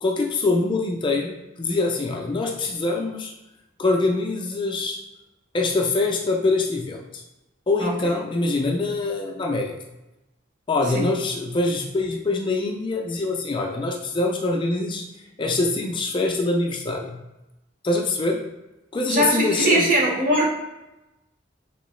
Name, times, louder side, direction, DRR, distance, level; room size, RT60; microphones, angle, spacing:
voice 1, 0.0-3.3 3.8-5.0 5.5-7.2 7.7-9.7 10.7-15.0 15.4-17.2 17.8-18.4 18.9-19.8, left 3 dB, 25° left, 2 dB, 0.4 m, -24 dB
voice 2, 19.1-20.5, right 1 dB, 45° right, -3 dB, 1.0 m, -21 dB
3.6 x 2.9 x 3.1 m, 0.97 s
head